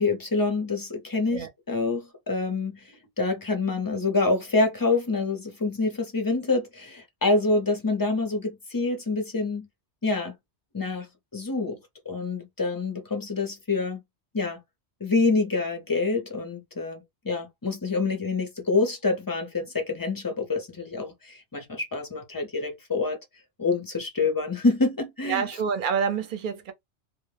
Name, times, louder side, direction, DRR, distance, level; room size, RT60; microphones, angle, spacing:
voice 1, 0.0-2.8 3.2-9.7 10.0-10.3 10.7-11.1 11.3-11.8 12.1-14.0 14.3-14.6 15.0-23.2 23.6-25.4, left 3 dB, 30° left, 0.4 m, -26 dB
voice 2, 25.2-26.7, right 7 dB, 55° right, 0.7 m, -27 dB
2.1 x 2.0 x 3.1 m
omnidirectional pair, 1.2 m